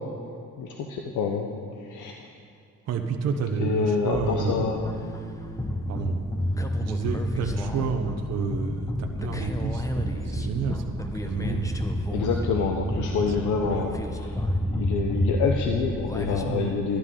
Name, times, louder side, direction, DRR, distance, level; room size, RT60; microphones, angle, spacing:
voice 1, 0.6-1.5 1.8-2.3 3.6-4.9 12.1-14.0 14.7-17.0, left 6 dB, 75° left, 2 dB, 0.8 m, -27 dB
voice 2, 2.9-4.7 5.9-6.2 6.8-11.8 13.4-14.0 16.4-16.7, right 5 dB, 55° right, 4 dB, 0.8 m, -30 dB
sound 1, 4.1-16.4, equal, 10° left, 0.8 m, -30 dB
11.5 x 11.5 x 3.8 m, 2.4 s
cardioid pair, 90°, 30 cm